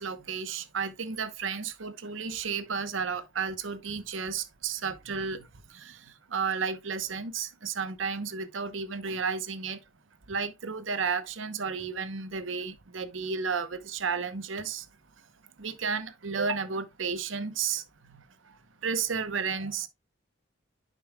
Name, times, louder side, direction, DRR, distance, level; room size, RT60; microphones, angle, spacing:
voice 1, 0.0-9.8 10.3-14.9 15.2-15.3 15.6-19.9, right 5 dB, 75° right, 0.9 m, -33 dB
10.5 x 5.4 x 2.3 m
head